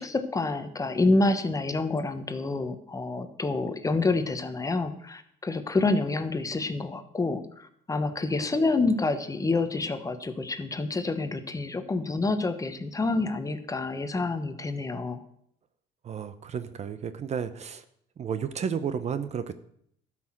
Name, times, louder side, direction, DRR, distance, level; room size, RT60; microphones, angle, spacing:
voice 1, 0.0-15.2, left 3 dB, 20° left, 9 dB, 1.1 m, -28 dB
voice 2, 16.0-17.8 18.2-19.6, right 7 dB, 40° right, 12 dB, 0.8 m, -32 dB
12.5 x 6.1 x 7.6 m, 0.69 s
cardioid pair, 110°, 17 cm